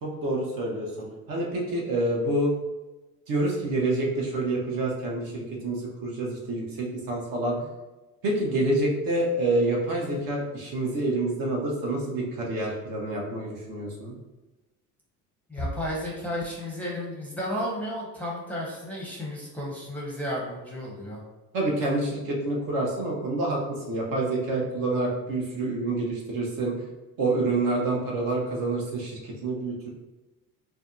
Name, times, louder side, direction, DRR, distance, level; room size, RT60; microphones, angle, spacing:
voice 1, 0.0-2.5 3.3-7.6 8.2-14.2 21.5-26.8 27.2-29.9, right 2 dB, 45° right, -2 dB, 0.8 m, -27 dB
voice 2, 15.5-21.2, equal, 5° left, -5 dB, 0.7 m, -33 dB
Bass drum, 15.6-17.0, equal, 85° left, 0.6 m, -38 dB
2.6 x 2.1 x 2.5 m, 1.1 s
hypercardioid pair, 65°, 46 cm